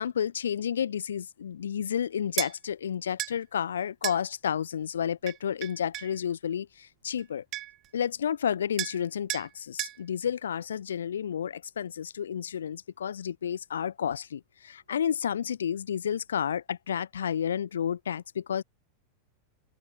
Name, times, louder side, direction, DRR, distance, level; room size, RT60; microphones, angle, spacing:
voice 1, 0.0-7.4 7.9-18.6, left 8 dB, 65° left, 0.9 m, -31 dB
sound 1, 2.4-2.5 3.2-3.4 4.0-4.2 5.3-6.1 7.2-7.3 7.5-7.9 8.8-9.0 9.3-9.5 9.8-10.0, right 16 dB, 35° right, 0.4 m, -33 dB
open air
figure-of-eight pair, 90°, 0 cm